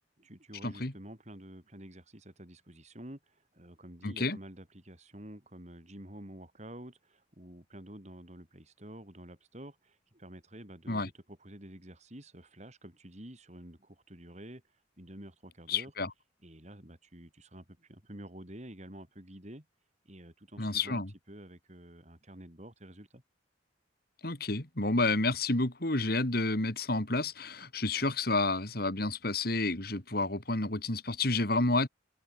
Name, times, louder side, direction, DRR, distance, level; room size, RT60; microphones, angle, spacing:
voice 1, 0.2-14.6 15.0-15.9 16.4-19.7 20.0-23.2, right 1 dB, 35° right, 4.6 m, -49 dB
voice 2, 4.0-4.4 10.9-11.1 15.7-16.1 20.6-21.1 24.2-31.9, left 2 dB, 55° left, 2.9 m, -30 dB
open air
head